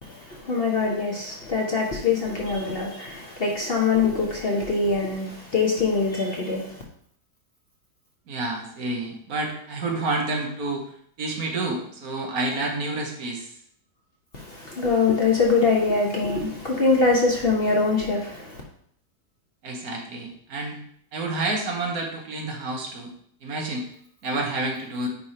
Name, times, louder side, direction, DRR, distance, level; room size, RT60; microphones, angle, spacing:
voice 1, 0.0-6.8 14.3-18.6, left 4 dB, 40° left, -1 dB, 1.1 m, -23 dB
voice 2, 8.3-10.8 11.2-13.5 19.6-20.8 21.1-23.1 23.4-23.8 24.2-25.1, right 2 dB, 60° right, 2 dB, 1.5 m, -29 dB
9.6 x 3.4 x 4.2 m, 0.66 s
omnidirectional pair, 1.8 m